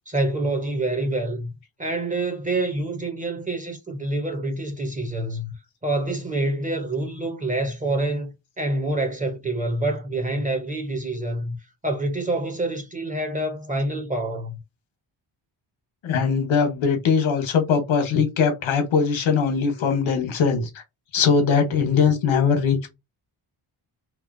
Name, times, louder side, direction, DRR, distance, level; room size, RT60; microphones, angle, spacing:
voice 1, 0.1-1.5 1.8-5.5 5.8-11.6 11.8-14.6, right 2 dB, 20° right, 0.5 m, -26 dB
voice 2, 16.0-20.8 21.1-22.9, left 6 dB, 90° left, 0.9 m, -21 dB
2.9 x 2.1 x 2.4 m
wide cardioid pair, 160°, 46 cm